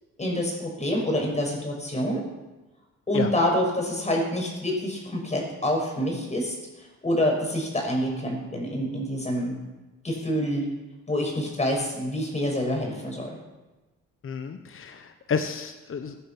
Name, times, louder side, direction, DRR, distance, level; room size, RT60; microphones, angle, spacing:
voice 1, 0.2-2.2 3.1-9.6 10.0-10.6 11.1-13.4, equal, 25° left, 0 dB, 6.0 m, -27 dB
voice 2, 14.2-16.2, left 6 dB, 45° left, 8 dB, 1.2 m, -31 dB
16.0 x 11.5 x 6.0 m, 1.1 s
cardioid pair, 90°, 30 cm